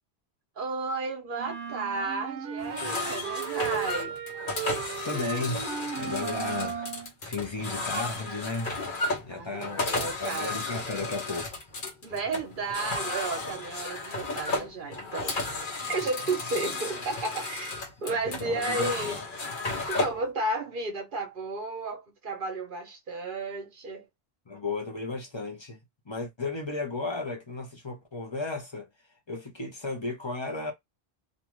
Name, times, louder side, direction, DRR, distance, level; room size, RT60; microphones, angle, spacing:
voice 1, 0.6-4.1 9.3-10.6 12.0-15.6 15.9-17.7 18.0-19.2 19.9-24.1, right 3 dB, 55° right, 0.9 m, -33 dB
sound 1, 1.4-7.1, right 8 dB, 80° right, 0.8 m, -35 dB
sound 2, 2.6-20.2, left 3 dB, 50° left, 1.0 m, -34 dB
voice 2, 5.0-5.7 5.9-8.7 9.3-11.6 15.8-15.9 18.1-19.2 24.5-28.9 29.3-30.7, left 3 dB, 30° left, 0.6 m, -34 dB
2.6 x 2.4 x 3.0 m
omnidirectional pair, 1.1 m